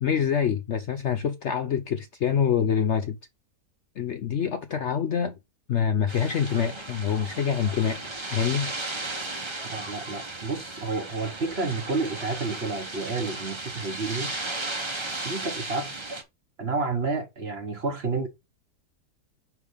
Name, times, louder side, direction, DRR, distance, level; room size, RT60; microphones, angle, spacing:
voice 1, 0.0-3.2 4.0-5.4 5.7-8.0 8.3-8.7, left 7 dB, 60° left, 0.8 m, -25 dB
sound 1, 6.1-16.2, right 2 dB, 20° right, 0.9 m, -35 dB
voice 2, 9.6-14.4 15.2-16.2 16.6-18.3, right 3 dB, 45° right, 1.2 m, -30 dB
5.1 x 4.7 x 5.0 m
omnidirectional pair, 1.7 m